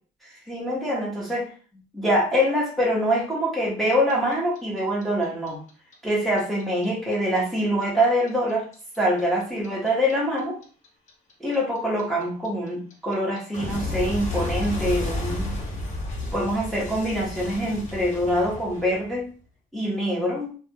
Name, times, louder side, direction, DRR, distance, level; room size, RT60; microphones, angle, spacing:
voice 1, 0.2-1.5 1.9-5.6 6.0-8.7 9.0-10.6 11.4-15.6 16.3-19.3 19.7-20.6, equal, ahead, -5 dB, 0.8 m, -24 dB
Clock, 3.9-6.9 7.1-10.1 10.4-19.2, left 2 dB, 45° left, 0.9 m, -32 dB
2.2 x 2.2 x 3.0 m, 0.40 s
cardioid pair, 110°, 17 cm